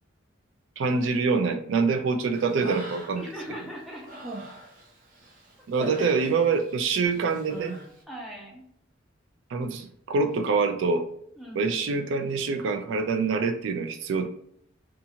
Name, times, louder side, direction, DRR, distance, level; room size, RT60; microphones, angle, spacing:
voice 1, 0.8-3.2 5.7-7.8 9.5-11.1 11.5-14.4, right 4 dB, 75° right, 6 dB, 0.4 m, -25 dB
Human voice, 2.3-3.4 3.8-6.7 7.0-7.9, right 1 dB, 45° right, 0.7 m, -39 dB
voice 2, 3.2-4.2 6.0-6.1 8.1-8.6 11.4-12.0, equal, ahead, -4 dB, 0.6 m, -40 dB
2.8 x 2.4 x 2.7 m, 0.66 s
head